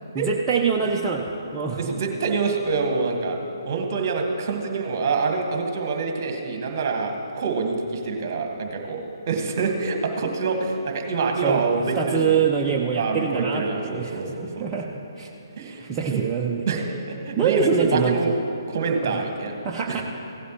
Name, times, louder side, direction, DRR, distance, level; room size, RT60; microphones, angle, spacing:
voice 1, 0.1-1.9 11.3-14.9 15.2-15.3 15.6-16.7 17.4-18.2 19.0-19.1 19.6-20.0, right 6 dB, 15° right, -2 dB, 0.6 m, -25 dB
voice 2, 1.8-3.4 3.6-9.0 9.3-12.4 13.0-14.7 15.6-16.2 16.7-18.3 18.7-19.5 19.9-20.0, right 4 dB, 40° right, 3 dB, 1.5 m, -26 dB
16.0 x 12.5 x 3.0 m, 2.9 s
figure-of-eight pair, 135°, 2 cm